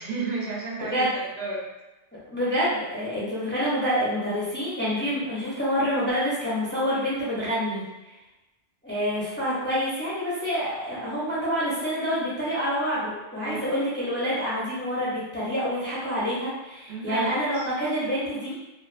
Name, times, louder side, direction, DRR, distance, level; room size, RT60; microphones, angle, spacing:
voice 1, 0.0-1.6 13.4-13.7 16.9-17.7, right 3 dB, 70° right, -2 dB, 0.8 m, -32 dB
voice 2, 2.3-7.8 8.8-18.5, equal, 15° left, -9 dB, 0.6 m, -27 dB
2.5 x 2.4 x 2.4 m, 1.0 s
omnidirectional pair, 1.1 m